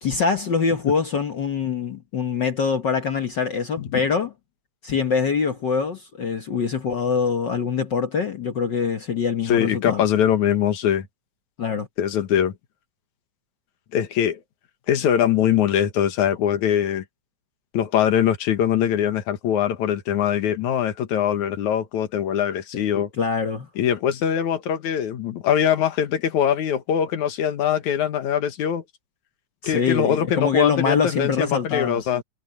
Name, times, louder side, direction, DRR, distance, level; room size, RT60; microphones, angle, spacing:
voice 1, 0.0-4.3 4.8-10.0 11.6-11.9 22.9-23.7 29.6-32.2, left 5 dB, 55° left, 1.3 m, -24 dB
voice 2, 9.5-11.1 12.0-12.5 13.9-14.4 14.9-17.0 17.7-23.1 23.8-28.8 29.6-32.2, left 9 dB, 75° left, 2.8 m, -22 dB
omnidirectional pair, 3.4 m